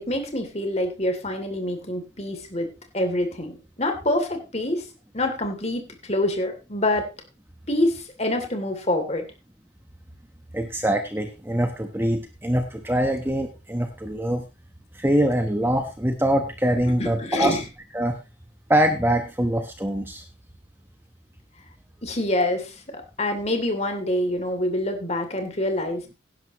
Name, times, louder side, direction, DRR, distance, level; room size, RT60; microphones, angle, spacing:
voice 1, 0.0-2.7 2.9-4.8 5.1-5.8 6.1-7.1 7.7-9.2 17.0-17.6 22.0-26.1, left 1 dB, 30° left, 5 dB, 2.8 m, -26 dB
voice 2, 10.5-14.4 14.9-17.6 17.9-18.2 18.7-20.2, right 1 dB, 10° right, 5 dB, 1.1 m, -23 dB
17.5 x 11.0 x 3.0 m, 0.28 s
head